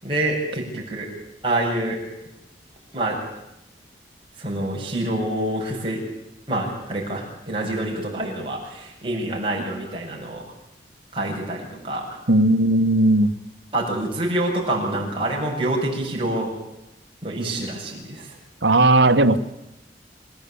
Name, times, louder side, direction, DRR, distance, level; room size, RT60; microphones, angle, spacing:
voice 1, 0.0-1.1 1.4-2.0 2.9-3.2 4.4-6.0 6.5-10.4 11.1-12.2 13.7-16.5 17.2-18.3, right 1 dB, 30° right, 7.5 m, -26 dB
voice 2, 12.3-13.3 18.6-19.4, right 2 dB, 90° right, 1.6 m, -16 dB
27.0 x 17.0 x 8.9 m
head